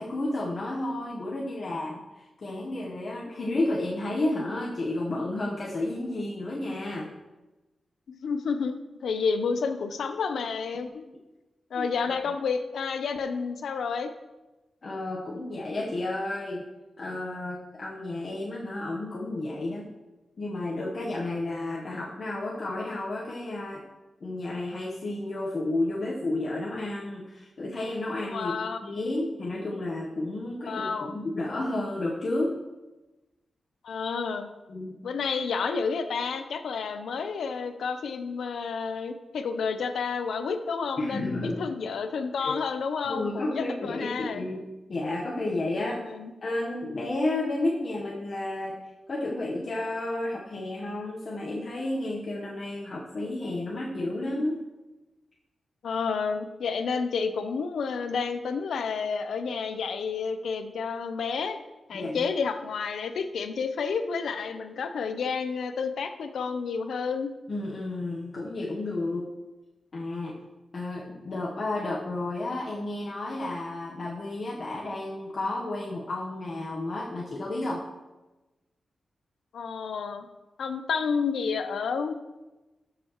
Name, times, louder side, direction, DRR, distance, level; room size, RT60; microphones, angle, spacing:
voice 1, 0.0-7.1 11.7-11.8 14.8-16.6 17.0-19.9 20.4-23.8 24.2-32.6 34.7-35.0 41.0-41.7 42.4-42.5 43.0-46.0 46.4-48.8 49.1-54.6 61.9-62.3 67.5-69.3 69.9-70.4 70.7-77.8, left 2 dB, 40° left, -4 dB, 1.1 m, -31 dB
voice 2, 8.1-11.0 11.7-14.1 28.3-28.8 30.6-31.2 33.8-34.5 35.0-44.4 45.8-46.3 55.8-61.6 61.9-67.3 79.5-80.3 80.6-82.1, left 5 dB, 90° left, 9 dB, 0.7 m, -30 dB
13.0 x 6.8 x 3.1 m, 1.1 s
wide cardioid pair, 165°, 0 cm